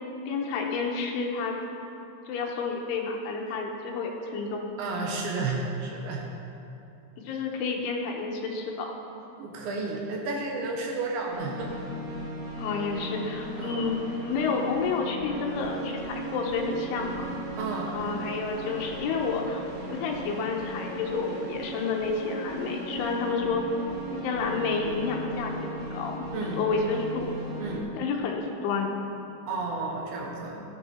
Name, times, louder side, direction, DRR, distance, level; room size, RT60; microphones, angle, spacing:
voice 1, 0.3-1.6 2.3-4.6 7.2-8.9 12.6-17.3 17.9-23.6 24.1-27.3 28.0-28.9, left 4 dB, 80° left, 1 dB, 3.3 m, -30 dB
voice 2, 4.8-6.3 7.3-7.4 9.4-11.7 13.6-14.0 17.6-18.1 23.2-23.4 26.3-26.6 27.6-27.9 29.5-30.6, right 3 dB, 70° right, -1 dB, 3.2 m, -32 dB
sound 1, 11.3-27.8, equal, 25° right, 1.4 m, -37 dB
16.5 x 9.5 x 4.4 m, 2.8 s
omnidirectional pair, 5.9 m